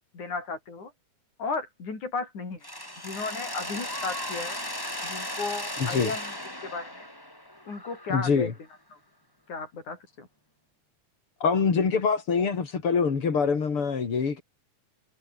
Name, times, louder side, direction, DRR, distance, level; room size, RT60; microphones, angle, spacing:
voice 1, 0.1-0.9 1.4-2.7 3.0-4.6 5.0-6.3 6.6-7.1 7.7-8.5 8.9-9.0 9.5-10.3, left 4 dB, 75° left, 7.6 m, -34 dB
Mechanisms, 2.6-8.5, left 1 dB, 5° left, 4.2 m, -36 dB
voice 2, 5.8-6.1 8.1-8.5 11.4-14.4, left 5 dB, 45° left, 3.8 m, -24 dB
omnidirectional pair, 3.4 m